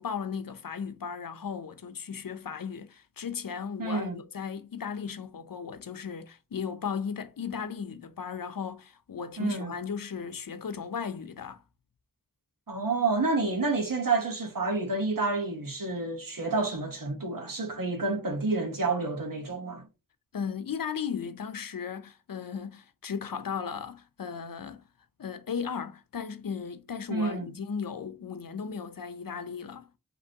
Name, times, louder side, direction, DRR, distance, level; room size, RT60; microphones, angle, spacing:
voice 1, 0.0-11.6 20.3-24.8 25.2-29.9, left 6 dB, 80° left, 0.6 m, -36 dB
voice 2, 3.8-4.2 9.4-9.7 12.7-19.8 27.1-27.5, right 3 dB, 75° right, 1.2 m, -29 dB
5.2 x 3.0 x 2.8 m
wide cardioid pair, 60°, 33 cm